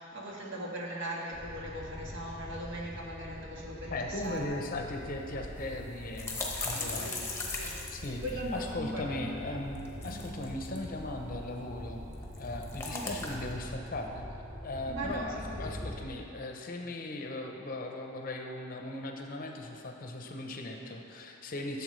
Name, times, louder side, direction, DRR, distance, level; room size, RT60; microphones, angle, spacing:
voice 1, 0.0-4.7 6.7-7.7 8.2-9.4 10.0-10.3 12.9-13.0 14.9-16.0, equal, 65° right, -3 dB, 1.5 m, -39 dB
sound 1, 1.3-15.9, equal, 30° right, 1.7 m, -44 dB
voice 2, 3.9-7.2 7.9-8.2 8.5-12.0 12.4-14.3 14.6-21.8, left 2 dB, 45° left, 3 dB, 0.7 m, -38 dB
sound 2, 4.2-4.3 4.6-4.7 5.6-8.7 9.8-10.8 12.1-13.5, left 3 dB, 10° left, 0.9 m, -38 dB
12.0 x 7.0 x 3.2 m, 2.8 s
head